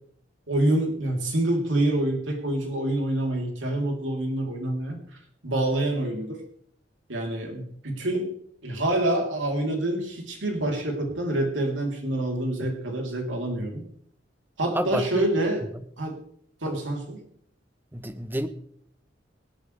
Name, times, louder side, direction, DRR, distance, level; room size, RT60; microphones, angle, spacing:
voice 1, 0.5-5.0 5.4-6.4 7.1-8.4 8.6-13.8 14.6-15.6 16.0-16.2 16.6-17.2, right 1 dB, 85° right, 1 dB, 3.7 m, -26 dB
voice 2, 14.7-15.2 17.9-18.5, right 1 dB, 10° right, 10 dB, 1.0 m, -28 dB
25.5 x 9.0 x 3.4 m, 0.66 s
head